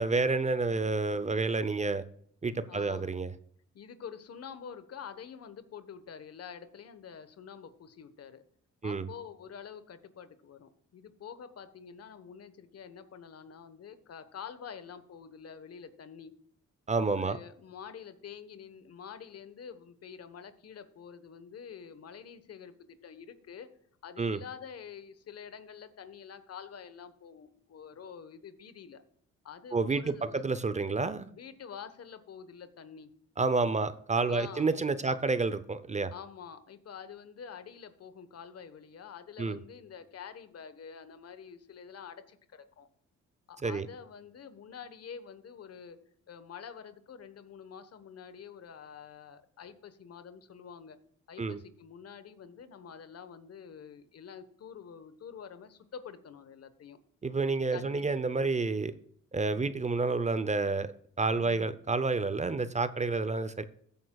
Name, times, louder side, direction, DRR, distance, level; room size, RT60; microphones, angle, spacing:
voice 1, 0.0-2.0 2.4-3.3 8.8-9.1 16.9-17.4 24.2-24.4 29.7-31.3 33.4-36.1 39.4-39.6 43.6-43.9 51.4-51.6 57.2-58.9 59.3-60.9 61.2-63.6, right 3 dB, 25° right, 13 dB, 0.7 m, -29 dB
voice 2, 2.7-3.1 3.7-8.4 8.8-16.3 17.2-23.7 24.0-29.0 29.4-30.5 31.3-33.1 34.3-34.7 35.0-35.2 36.1-42.9 43.5-46.0 46.3-51.0 51.3-57.0 57.7-58.1 59.5-59.8 61.3-61.7 62.5-62.7, left 7 dB, 55° left, 11 dB, 1.2 m, -47 dB
15.0 x 9.0 x 2.3 m, 0.63 s
cardioid pair, 90°, 30 cm